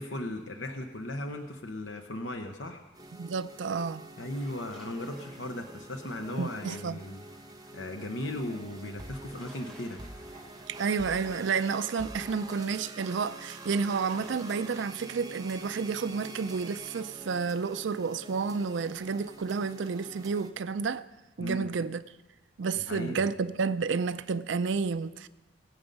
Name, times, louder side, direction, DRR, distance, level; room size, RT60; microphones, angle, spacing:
voice 1, 0.0-2.8 4.2-7.2 7.7-10.0 21.4-21.7 22.8-23.2, left 1 dB, 80° left, 0.9 m, -37 dB
sound 1, 2.9-20.5, right 2 dB, 20° right, 0.9 m, -46 dB
voice 2, 3.1-4.1 6.4-7.0 10.7-21.1 21.4-22.0 22.6-25.3, right 5 dB, 75° right, 0.4 m, -30 dB
sound 2, 4.3-14.6, right 1 dB, 5° left, 3.5 m, -56 dB
20.5 x 8.0 x 5.3 m
head